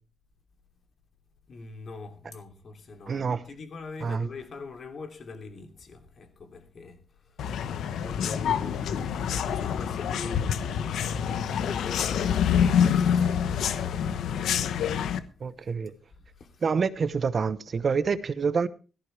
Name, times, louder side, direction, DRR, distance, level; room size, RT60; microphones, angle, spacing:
voice 1, 1.5-11.0 11.4-14.3 15.4-15.5 16.2-16.7, left 3 dB, 45° left, 2.8 m, -43 dB
voice 2, 3.1-3.4 4.0-4.3 15.4-15.9 16.6-18.7, right 5 dB, 35° right, 0.9 m, -27 dB
sound 1, 7.4-15.2, left 8 dB, 80° left, 1.1 m, -26 dB
16.5 x 14.5 x 3.3 m
wide cardioid pair, 150°, 0 cm